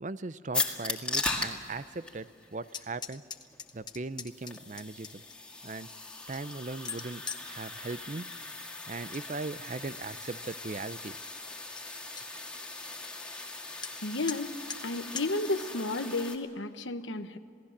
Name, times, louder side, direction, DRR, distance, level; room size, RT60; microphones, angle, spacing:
voice 1, 0.0-3.2 3.7-5.2 5.6-5.9 6.3-8.3 8.9-11.2, right 3 dB, 40° right, 15 dB, 0.6 m, -39 dB
sound 1, 0.5-16.4, left 3 dB, 5° left, 2.0 m, -39 dB
sound 2, 2.7-5.3 5.9-7.5 8.8-9.3 9.6-10.1 10.6-10.7 11.1-11.2 11.5-11.6 11.8-12.3 13.8-13.9 14.3-14.4 14.7-14.8 15.2-15.3, left 7 dB, 25° left, 0.9 m, -42 dB
voice 2, 14.0-14.5 14.8-17.4, left 2 dB, 80° left, 8 dB, 1.1 m, -32 dB
28.0 x 18.5 x 7.3 m, 2.4 s
head